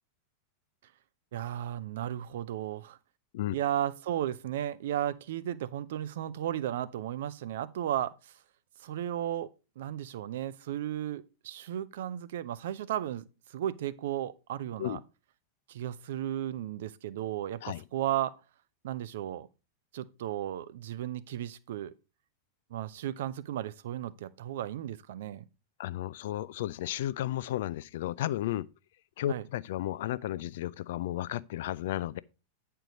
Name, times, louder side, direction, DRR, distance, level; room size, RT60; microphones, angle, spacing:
voice 1, 1.3-3.0 3.5-8.3 8.8-13.2 13.5-15.0 15.7-18.4 18.8-19.5 19.9-21.9 22.7-25.5 29.3-29.4, right 11 dB, 55° right, 0.5 m, -34 dB
voice 2, 25.8-28.7 29.2-32.2, left 13 dB, 55° left, 0.4 m, -33 dB
9.0 x 4.5 x 5.1 m
figure-of-eight pair, 90°, 0 cm